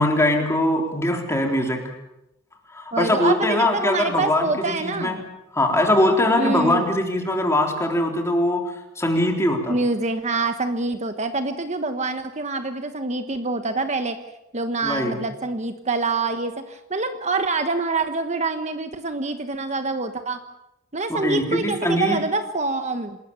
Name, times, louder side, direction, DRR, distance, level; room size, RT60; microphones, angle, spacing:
voice 1, 0.0-1.8 2.7-5.3 5.5-9.8 14.8-15.2 21.1-22.2, left 1 dB, 15° left, 2 dB, 3.7 m, -22 dB
voice 2, 2.9-5.2 6.4-6.8 9.7-14.2 14.5-20.4 20.9-23.2, right 3 dB, 35° right, 8 dB, 1.2 m, -26 dB
27.5 x 20.5 x 7.1 m, 0.87 s
head